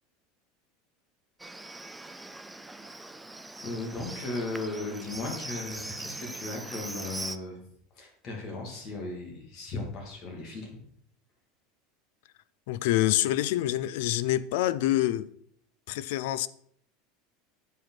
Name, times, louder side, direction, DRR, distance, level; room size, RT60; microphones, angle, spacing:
Livestock farm animals working animals, 1.4-7.4, right 2 dB, 5° right, 0.4 m, -41 dB
voice 1, 3.6-7.6 8.0-10.7, left 2 dB, 35° left, 2.6 m, -36 dB
voice 2, 12.7-15.3 15.9-16.5, left 14 dB, 70° left, 0.4 m, -26 dB
9.1 x 5.0 x 5.9 m
supercardioid pair, 160°, 0 cm